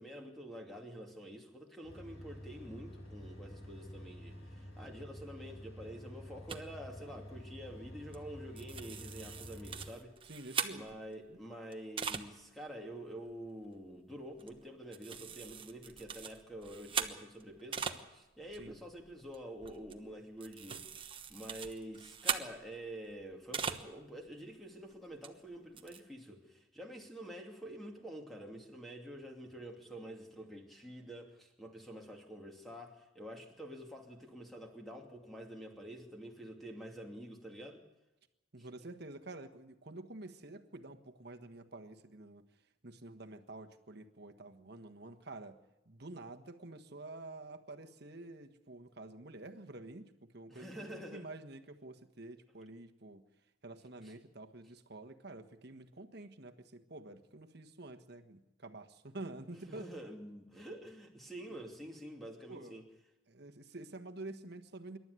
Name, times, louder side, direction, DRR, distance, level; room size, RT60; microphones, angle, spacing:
voice 1, 0.0-10.2 10.7-20.9 21.3-37.8 38.6-38.7 50.5-51.3 54.0-54.1 59.7-62.8, right 1 dB, ahead, 1 dB, 2.6 m, -48 dB
sound 1, 1.8-9.9, equal, 75° left, 8.0 m, -50 dB
sound 2, 6.5-6.6 8.1-8.3 8.6-11.1 11.7-12.3 12.8-12.9 13.3-13.5 14.4-14.7 14.9-18.0 18.3-23.9 24.3-24.4 25.2-25.3 25.5-26.0, right 6 dB, 25° right, 1.1 m, -41 dB
voice 2, 10.2-10.8 11.3-11.4 18.5-18.8 38.5-42.4 42.8-45.6 45.8-53.2 53.6-59.8 61.5-61.6 62.5-62.8 63.3-65.0, right 2 dB, 50° right, 5 dB, 1.4 m, -49 dB
27.0 x 12.0 x 9.6 m, 0.97 s
head